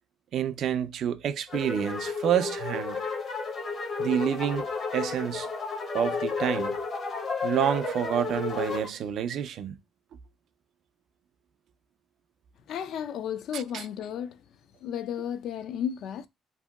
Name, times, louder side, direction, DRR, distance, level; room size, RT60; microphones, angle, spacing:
voice 1, 0.3-3.0 4.0-4.7 4.9-5.5 5.9-6.8 7.4-9.8 13.5-13.8, right 9 dB, 60° right, 0.3 m, -28 dB
sound 1, 1.5-8.9, left 4 dB, 45° left, 0.7 m, -32 dB
voice 2, 12.7-14.4 14.8-16.3, left 9 dB, 65° left, 0.3 m, -33 dB
2.8 x 2.7 x 2.2 m
cardioid pair, 130°, 0 cm